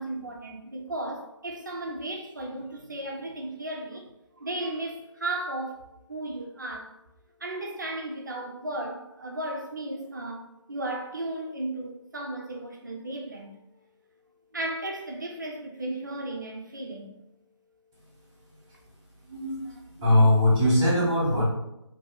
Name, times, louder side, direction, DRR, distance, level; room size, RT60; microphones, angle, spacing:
voice 1, 0.0-4.1 4.4-7.0 7.4-13.5 14.5-17.2, right 1 dB, 40° right, 0.4 m, -35 dB
voice 2, 19.3-21.4, left 1 dB, 10° right, 0.7 m, -21 dB
2.7 x 2.6 x 2.3 m
figure-of-eight pair, 160°, 15 cm